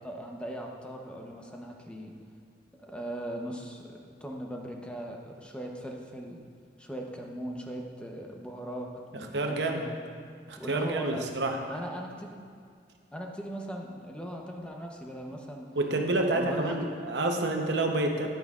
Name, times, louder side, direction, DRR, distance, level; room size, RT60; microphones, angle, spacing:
voice 1, 0.0-2.1 2.8-6.4 6.8-9.8 10.6-11.3 11.7-12.4 13.1-15.7 16.3-16.9, right 1 dB, 5° left, 0 dB, 0.7 m, -39 dB
voice 2, 9.1-9.9 10.5-11.6 15.8-18.3, right 2 dB, 80° right, 3 dB, 0.8 m, -28 dB
10.5 x 9.0 x 2.4 m, 2.1 s
head